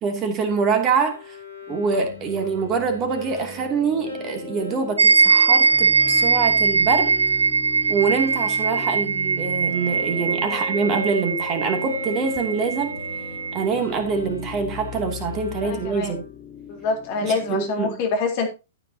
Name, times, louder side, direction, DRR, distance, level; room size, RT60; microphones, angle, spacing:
voice 1, 0.0-1.4 1.7-7.1 7.9-13.0 13.5-16.2 17.2-18.0, right 5 dB, 25° right, 2.8 m, -25 dB
Bowed string instrument, 1.0-10.4 10.7-16.5, left 1 dB, 85° left, 3.5 m, -41 dB
sound 1, 1.7-17.7, left 7 dB, 25° left, 2.7 m, -39 dB
sound 2, 5.0-13.7, right 5 dB, 80° right, 0.6 m, -21 dB
voice 2, 15.6-16.2 16.7-18.5, left 4 dB, 40° left, 3.9 m, -26 dB
13.5 x 9.2 x 2.9 m
figure-of-eight pair, 105°, 0 cm